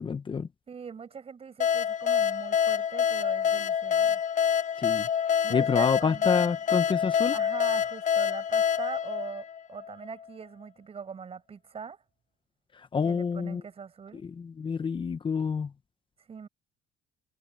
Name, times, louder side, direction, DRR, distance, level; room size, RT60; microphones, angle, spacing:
voice 1, 0.0-0.5 4.8-5.1 5.5-7.3 12.7-13.6 14.1-15.7, left 6 dB, 30° left, 1.0 m, -28 dB
voice 2, 0.7-4.2 5.4-6.5 7.3-12.0 13.0-14.2 16.3-16.5, right 6 dB, 35° right, 6.5 m, -41 dB
sound 1, 1.6-10.0, left 8 dB, 50° left, 1.3 m, -26 dB
cardioid pair, 110°, 17 cm